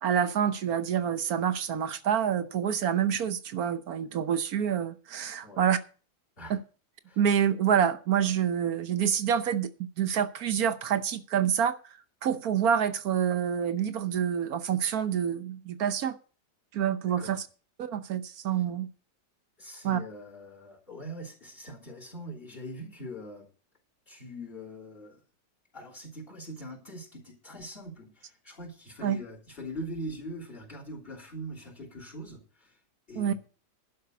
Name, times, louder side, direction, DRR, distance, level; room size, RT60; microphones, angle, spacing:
voice 1, 0.0-5.8 6.5-6.6 7.2-11.8 12.2-16.2 16.7-17.5 17.8-18.9 19.8-20.0 29.0-29.2 33.2-33.3, right 8 dB, 65° right, 1.2 m, -27 dB
voice 2, 17.0-17.4 19.6-23.5 24.1-25.2 25.7-32.7 33.1-33.3, equal, 30° left, 3.5 m, -42 dB
11.5 x 5.7 x 8.0 m
omnidirectional pair, 1.9 m